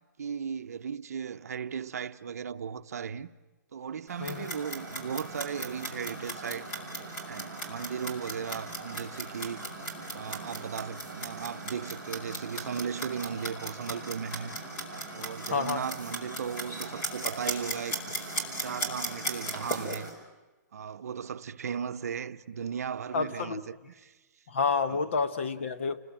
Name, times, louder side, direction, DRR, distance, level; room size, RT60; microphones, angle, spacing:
voice 1, 0.2-3.3 3.7-6.7 7.3-9.6 10.1-14.5 15.1-18.0 18.6-20.1 20.7-24.1 24.9-25.0, right 7 dB, 55° right, 0.9 m, -36 dB
Clock, 4.1-20.1, right 2 dB, 20° left, 4.6 m, -37 dB
voice 2, 15.5-15.8 23.1-23.6 24.5-26.0, left 5 dB, 40° left, 1.0 m, -29 dB
30.0 x 20.5 x 9.0 m
hypercardioid pair, 180°, 10 cm